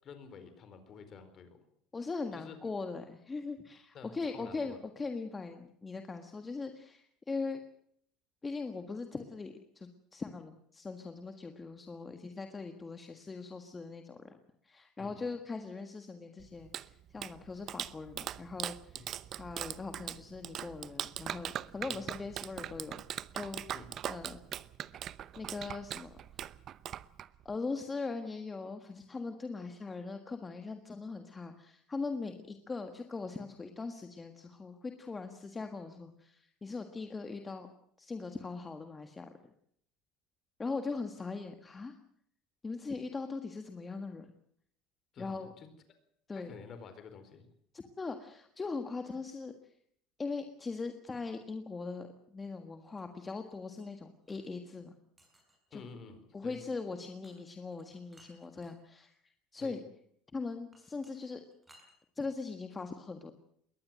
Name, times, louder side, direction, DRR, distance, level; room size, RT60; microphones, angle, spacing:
voice 1, 0.0-1.6 2.3-2.7 3.9-4.8 15.0-15.3 18.9-19.1 21.9-22.0 23.7-23.9 45.1-45.7 46.3-47.5 55.7-56.6 59.6-59.8, left 5 dB, 35° left, 10 dB, 4.5 m, -50 dB
voice 2, 1.9-7.6 8.4-14.2 14.6-19.0 19.3-23.0 23.3-23.6 24.1-24.4 25.4-26.1 27.4-37.7 38.0-39.3 40.6-42.0 42.6-44.3 45.2-45.5 46.3-46.6 47.7-49.5 50.2-55.0 55.7-55.8 56.3-59.2 59.5-59.8 60.3-61.4 62.1-63.3, left 4 dB, 15° left, 6 dB, 1.6 m, -40 dB
Clapping, 16.4-27.5, right 10 dB, 40° right, 0.8 m, -41 dB
sound 1, 53.0-54.5 55.2-55.7 57.2-57.4 57.7-58.8 60.7-61.9, right 1 dB, 10° right, 6.0 m, -63 dB
22.0 x 18.5 x 7.6 m, 0.68 s
cardioid pair, 145°, 0 cm